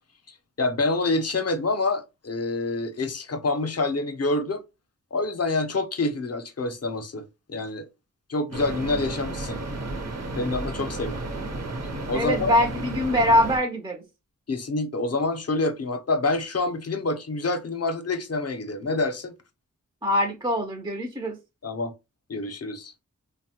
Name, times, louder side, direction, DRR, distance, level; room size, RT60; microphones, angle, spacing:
voice 1, 0.6-4.6 5.1-7.9 8.3-9.6 10.4-11.3 12.1-12.5 14.5-19.3 21.6-21.9 22.3-22.9, left 2 dB, 55° left, 0.6 m, -27 dB
sound 1, 8.5-13.6, right 2 dB, 55° right, 0.7 m, -32 dB
voice 2, 12.1-14.0 20.0-21.4, equal, 15° right, 0.4 m, -23 dB
3.4 x 2.1 x 2.7 m
wide cardioid pair, 55°, 31 cm